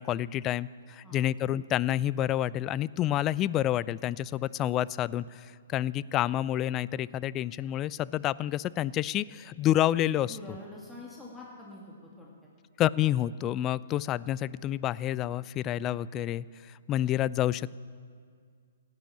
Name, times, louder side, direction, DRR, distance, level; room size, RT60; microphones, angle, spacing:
voice 1, 0.0-10.4 12.8-16.5 16.9-17.8, left 12 dB, 25° left, 20 dB, 0.3 m, -29 dB
voice 2, 10.2-12.3, left 1 dB, 5° left, -4 dB, 2.4 m, -46 dB
16.5 x 9.0 x 8.9 m, 2.1 s
hypercardioid pair, 130°, 0 cm